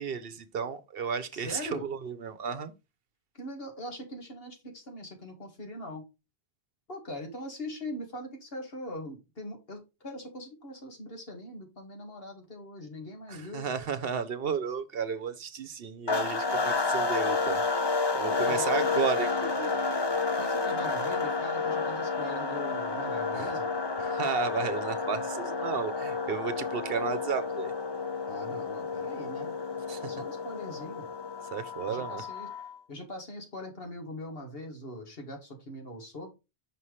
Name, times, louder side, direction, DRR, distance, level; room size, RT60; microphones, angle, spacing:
voice 1, 0.0-2.7 13.3-17.6 18.1-19.8 23.3-23.5 24.0-27.7 29.9-30.1 31.5-32.2, right 6 dB, 65° right, 1.0 m, -33 dB
voice 2, 1.3-1.9 3.4-6.0 6.9-13.7 18.3-19.0 20.3-23.7 28.3-29.5 30.0-31.1 31.9-32.5 32.9-36.3, left 1 dB, 60° left, 2.1 m, -41 dB
sound 1, 16.1-32.8, left 4 dB, 30° left, 0.7 m, -30 dB
6.0 x 5.7 x 3.2 m
omnidirectional pair, 1.1 m